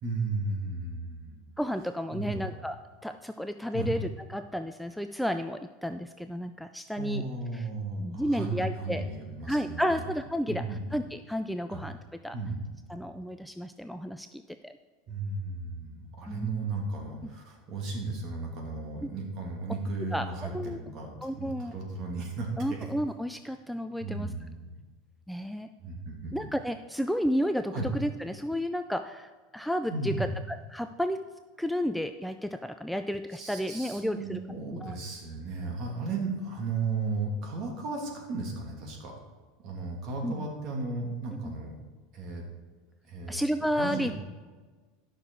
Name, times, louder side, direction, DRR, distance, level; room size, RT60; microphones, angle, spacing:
voice 1, 0.0-1.4 2.1-2.5 3.7-4.1 7.0-10.1 10.5-10.8 11.7-11.8 12.3-12.6 15.1-22.9 24.0-24.7 25.8-26.4 27.7-27.9 29.9-30.3 33.4-39.1 39.6-41.7 42.1-42.4 43.1-43.4 43.8-44.1, right 3 dB, 45° right, 0 dB, 2.5 m, -35 dB
voice 2, 1.6-2.8 3.0-7.2 7.6-7.7 8.0-9.0 9.5-10.6 10.9-12.0 12.2-12.3 12.9-14.8 16.3-16.7 20.1-20.8 21.2-21.7 22.6-24.3 25.3-25.7 26.3-31.2 31.6-34.4 34.7-35.0 40.2-40.5 41.4-41.5 43.3-44.1, equal, ahead, 8 dB, 0.3 m, -32 dB
12.0 x 6.3 x 4.6 m, 1.4 s
supercardioid pair, 140°, 0 cm